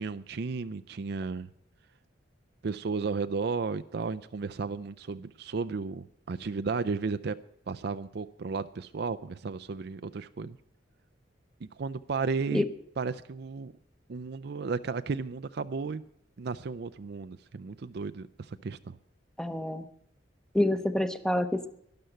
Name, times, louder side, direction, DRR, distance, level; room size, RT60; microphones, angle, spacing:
voice 1, 0.0-1.5 2.6-7.4 7.7-10.6 11.8-12.7 13.0-13.7 14.1-16.0 16.4-19.0, right 4 dB, 60° right, 12 dB, 0.5 m, -34 dB
voice 2, 19.4-19.8 20.5-21.7, left 1 dB, 5° left, 11 dB, 0.8 m, -27 dB
12.0 x 11.5 x 7.8 m, 0.71 s
head